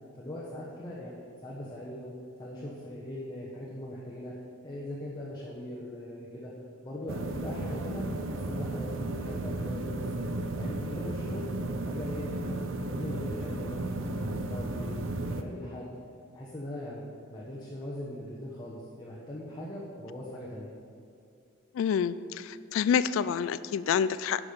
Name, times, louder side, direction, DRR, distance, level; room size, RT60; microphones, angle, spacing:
voice 1, 0.1-2.1 2.4-4.3 4.6-6.5 6.8-10.2 10.6-11.5 11.8-14.9 15.2-15.9 16.3-20.7, left 1 dB, 20° left, -6 dB, 1.1 m, -40 dB
sound 1, 7.1-15.4, right 2 dB, 80° right, 0.6 m, -34 dB
voice 2, 21.7-24.4, left 7 dB, 85° left, 15 dB, 0.3 m, -28 dB
10.5 x 6.3 x 5.2 m, 2.4 s
head